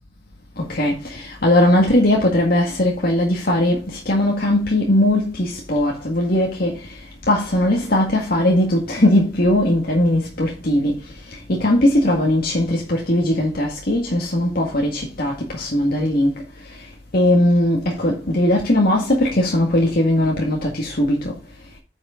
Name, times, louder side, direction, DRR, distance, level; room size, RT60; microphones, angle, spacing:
voice 1, 0.6-6.7 7.3-10.9 11.5-16.3 17.1-21.3, left 1 dB, 55° left, 1.9 m, -19 dB
9.4 x 6.3 x 3.8 m
head